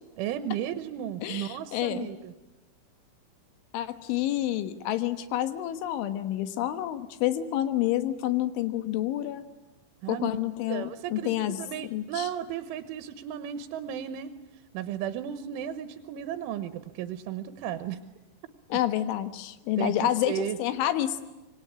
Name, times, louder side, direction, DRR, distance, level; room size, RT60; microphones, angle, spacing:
voice 1, 0.2-2.3 10.0-10.3 10.7-14.4 14.7-18.0 19.8-20.6, right 10 dB, 90° right, 10 dB, 3.5 m, -34 dB
voice 2, 1.2-2.1 3.7-9.4 10.1-12.3 18.7-21.2, left 13 dB, 85° left, 10 dB, 3.8 m, -29 dB
26.0 x 23.0 x 9.7 m, 1.1 s
omnidirectional pair, 5.4 m